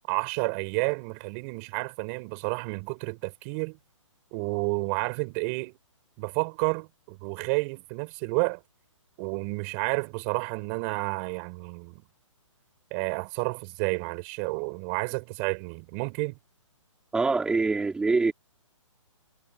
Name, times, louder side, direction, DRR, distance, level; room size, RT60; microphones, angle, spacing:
voice 1, 0.1-3.8 4.3-5.8 6.2-8.6 9.2-12.0 12.9-16.4, right 35 dB, 25° right, 7.0 m, -30 dB
voice 2, 17.1-18.3, right 3 dB, 5° right, 3.7 m, -24 dB
hypercardioid pair, 160°, 17 cm